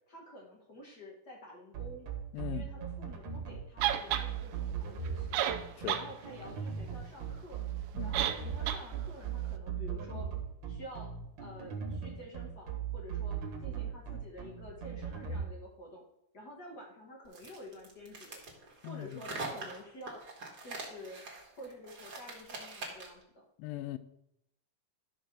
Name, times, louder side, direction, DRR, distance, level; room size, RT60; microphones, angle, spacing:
voice 1, 0.1-2.1 2.5-10.3 10.7-11.1 11.4-16.0 16.3-18.4 18.8-20.2 20.6-21.2 21.5-23.5, equal, 45° left, -1 dB, 1.3 m, -49 dB
sound 1, 1.7-15.4, right 7 dB, 55° right, 2.2 m, -38 dB
voice 2, 2.3-2.7 5.8-6.0 7.9-8.2 18.8-19.2 23.6-24.0, left 15 dB, 80° left, 12 dB, 2.2 m, -39 dB
sound 2, 3.8-4.3 5.1-5.2 5.3-6.1 6.4-6.5 8.1-8.4 8.7-8.8, right 11 dB, 90° right, 1.6 m, -30 dB
sound 3, 17.3-23.2, right 3 dB, 40° right, 1.5 m, -43 dB
13.0 x 4.6 x 6.0 m, 0.79 s
omnidirectional pair, 4.3 m